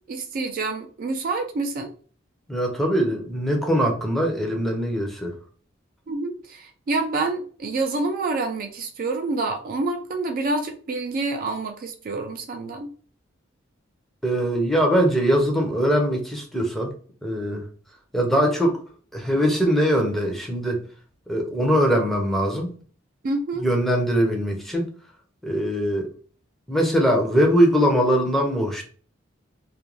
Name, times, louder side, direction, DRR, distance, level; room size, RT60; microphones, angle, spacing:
voice 1, 0.1-1.9 6.1-12.9 23.2-23.7, right 3 dB, 45° right, 5 dB, 0.3 m, -27 dB
voice 2, 2.5-5.3 14.2-16.9 17.2-17.6 18.1-18.8 19.1-20.8 21.3-22.8 23.6-24.9 25.4-26.1 26.7-28.8, equal, ahead, 1 dB, 0.5 m, -21 dB
2.4 x 2.2 x 3.0 m, 0.42 s
head